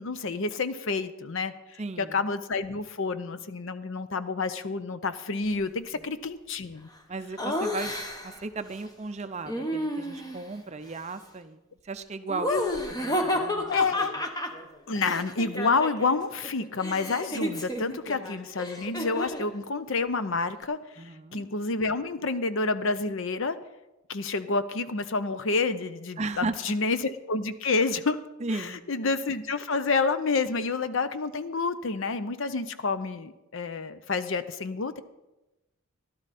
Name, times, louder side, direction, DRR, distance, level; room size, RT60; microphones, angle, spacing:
voice 1, 0.0-6.9 12.5-12.9 13.7-14.1 14.9-20.8 21.3-23.6 24.1-28.2 28.5-35.0, left 4 dB, 60° left, 12 dB, 0.6 m, -29 dB
voice 2, 1.8-2.2 5.9-6.0 7.1-11.6 11.8-12.5 12.9-13.7 21.0-21.4 26.2-26.6 28.4-28.8, right 3 dB, 30° right, 10 dB, 0.5 m, -35 dB
Laughter, 7.4-8.4 9.5-10.5 12.3-16.2 16.4-19.5, left 1 dB, 15° left, 0.9 m, -32 dB
15.0 x 12.0 x 4.2 m, 1.0 s
head